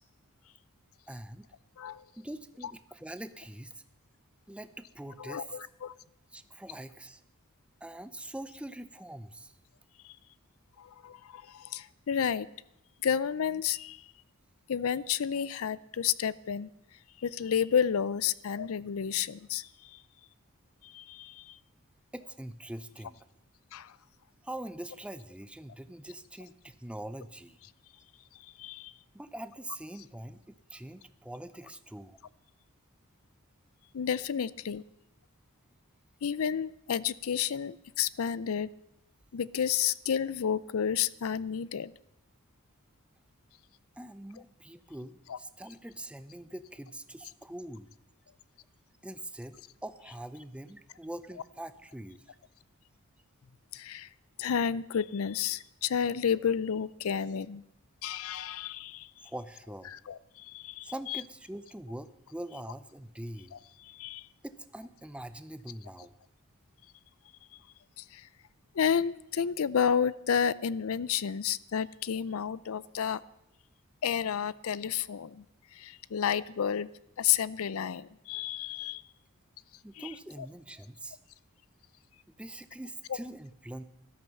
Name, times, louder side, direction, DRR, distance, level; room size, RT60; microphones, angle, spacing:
voice 1, 1.1-1.5 2.1-3.8 4.5-5.6 6.3-7.2 7.8-9.5 22.1-23.2 24.4-27.6 29.1-32.2 34.4-34.5 44.0-47.9 49.0-52.4 59.2-59.9 60.8-63.5 64.4-66.1 79.8-81.2 82.4-83.8, right 1 dB, 5° right, 12 dB, 0.5 m, -43 dB
voice 2, 5.2-5.9 10.0-10.2 10.8-12.5 13.0-14.0 14.7-16.7 17.2-20.0 20.8-21.5 23.7-23.9 28.6-28.9 33.9-34.8 36.2-38.7 39.3-41.9 45.3-45.4 53.7-54.1 54.4-57.6 58.0-59.1 59.9-61.2 63.8-64.3 68.0-68.3 68.7-73.2 74.0-75.4 75.7-76.9 77.2-79.0 80.0-80.1, left 8 dB, 65° left, 19 dB, 0.4 m, -31 dB
14.0 x 12.5 x 5.4 m, 0.88 s
head